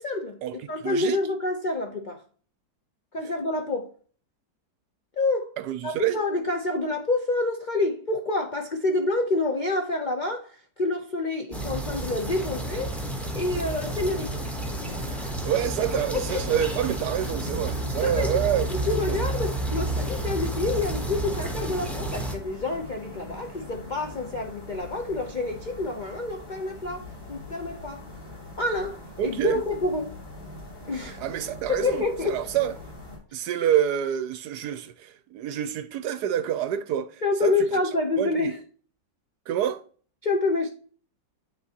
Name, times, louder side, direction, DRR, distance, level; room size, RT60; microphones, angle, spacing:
voice 1, 0.0-2.2 3.1-3.9 5.2-5.6 5.8-13.1 13.3-14.4 14.8-15.3 16.1-16.4 18.0-18.3 18.7-28.0 28.6-30.2 30.9-31.2 31.7-32.4 37.2-38.6 40.2-40.7, left 2 dB, 90° left, 0.4 m, -28 dB
voice 2, 0.8-1.2 5.6-6.2 15.2-18.7 19.0-19.2 29.2-29.6 31.0-32.7 33.3-37.8 38.2-38.5 39.5-39.8, right 10 dB, 70° right, 1.0 m, -27 dB
sound 1, 11.5-22.4, right 1 dB, ahead, 0.6 m, -31 dB
sound 2, 13.6-33.2, left 2 dB, 45° left, 3.2 m, -43 dB
11.0 x 3.7 x 2.8 m
omnidirectional pair, 2.0 m